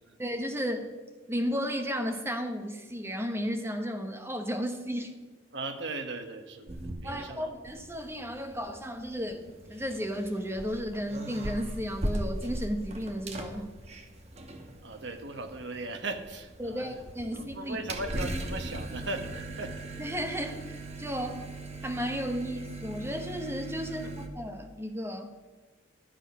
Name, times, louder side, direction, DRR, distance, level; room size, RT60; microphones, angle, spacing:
voice 1, 0.2-0.9 1.3-5.1 7.0-13.7 16.6-17.8 20.0-21.4 21.8-24.1 24.3-25.3, equal, 15° right, 5 dB, 0.9 m, -34 dB
voice 2, 5.5-7.5 14.8-16.9 17.3-19.8 24.0-24.2, right 2 dB, 65° right, 7 dB, 1.1 m, -38 dB
sound 1, 6.7-7.4 7.7-24.3, right 1 dB, 35° right, 1.0 m, -39 dB
12.0 x 7.3 x 5.5 m, 1.4 s
head